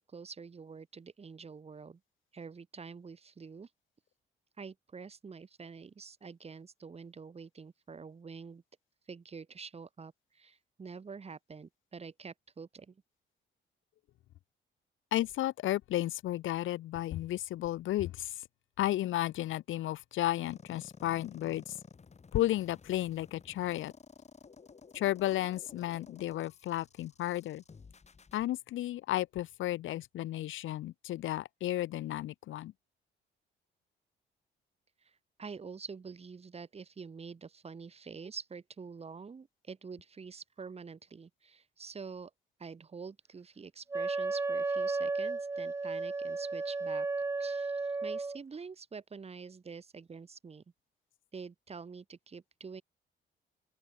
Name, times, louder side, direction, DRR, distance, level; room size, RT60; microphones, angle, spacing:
voice 1, 0.1-2.0 2.3-3.7 4.6-8.6 9.1-13.0 35.0-42.3 42.6-47.1 47.4-50.6 51.3-52.8, right 5 dB, 30° right, 1.6 m, -47 dB
voice 2, 15.1-18.4 18.8-21.7 22.3-23.9 24.9-27.6 28.3-32.7, left 14 dB, 80° left, 1.7 m, -33 dB
sound 1, 20.4-28.4, left 5 dB, 35° left, 3.0 m, -54 dB
Wind instrument woodwind instrument, 43.9-48.4, right 3 dB, 15° right, 0.4 m, -33 dB
open air
cardioid pair, 90°, 20 cm